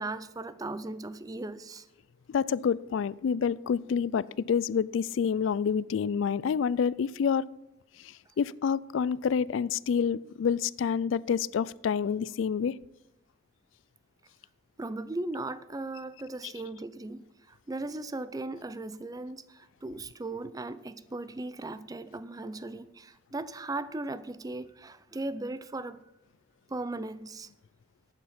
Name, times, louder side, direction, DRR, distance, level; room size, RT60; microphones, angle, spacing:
voice 1, 0.0-1.9 14.8-26.0 26.7-27.5, right 2 dB, 20° right, 0.5 m, -37 dB
voice 2, 2.3-7.5 8.0-12.8, left 6 dB, 65° left, 0.3 m, -28 dB
11.5 x 8.9 x 5.8 m
head